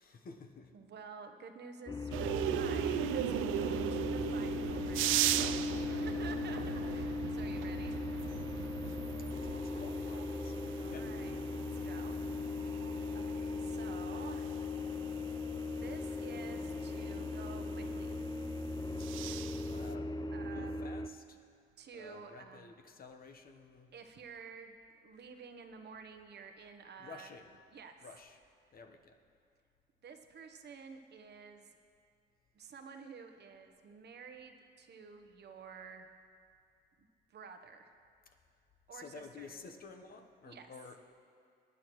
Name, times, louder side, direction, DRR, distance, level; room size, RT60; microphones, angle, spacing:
voice 1, 0.0-0.7 5.2-6.0 9.5-11.1 19.7-20.1 20.4-21.4 21.9-23.9 27.0-27.5 28.0-28.4 28.7-29.2 38.9-41.1, left 4 dB, 45° left, 4 dB, 1.0 m, -52 dB
voice 2, 0.7-8.0 10.6-14.5 15.7-18.1 20.3-20.9 21.8-22.7 23.9-24.8 25.0-27.4 27.7-28.1 30.0-31.7 32.5-36.1 37.3-37.9 38.9-39.6 40.4-40.7, right 5 dB, 55° right, 6 dB, 1.0 m, -51 dB
sound 1, 1.9-21.1, left 3 dB, 20° left, 0.4 m, -38 dB
sound 2, 2.1-19.9, right 13 dB, 90° right, 0.4 m, -39 dB
22.5 x 9.4 x 3.1 m, 2.3 s
cardioid pair, 90°, 20 cm